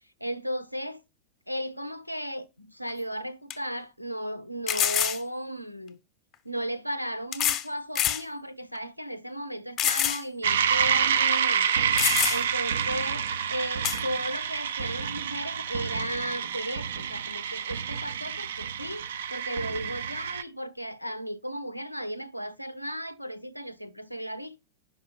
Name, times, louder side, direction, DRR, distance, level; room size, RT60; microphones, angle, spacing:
voice 1, 0.2-1.0 1.5-6.0 6.4-11.7 12.3-13.2 13.5-19.0 19.3-24.6, equal, 90° left, 0.5 m, -35 dB
sound 1, 2.9-3.0 3.5-3.6 4.7-5.2 6.3-6.4 7.3-7.7 7.9-8.2 8.7-8.8 9.8-10.2 10.6-10.7 11.5-11.6 12.0-12.6 13.8-14.0, left 10 dB, 35° left, 0.9 m, -26 dB
sound 2, 10.4-20.4, right 7 dB, 60° right, 0.5 m, -28 dB
5.5 x 5.3 x 5.6 m
figure-of-eight pair, 90°, 0 cm